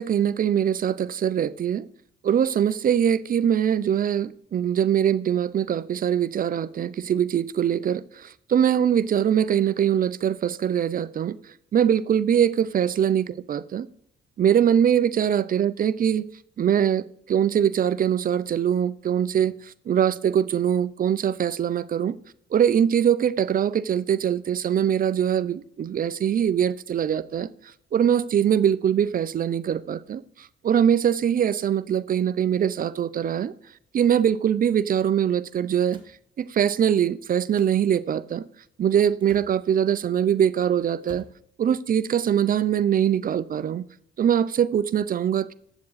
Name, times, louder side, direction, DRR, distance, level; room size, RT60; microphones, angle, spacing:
voice 1, 0.0-1.9 2.2-11.4 11.7-13.8 14.4-16.3 16.6-22.2 22.5-27.5 27.9-33.5 33.9-36.0 36.4-38.4 38.8-41.2 41.6-43.8 44.2-45.5, right 9 dB, 45° right, 0.5 m, -22 dB
sound 1, 35.9-36.1 37.5-37.7 39.2-39.6 41.0-41.4, right 4 dB, 25° right, 1.5 m, -48 dB
8.6 x 7.2 x 4.0 m
cardioid pair, 90°, 20 cm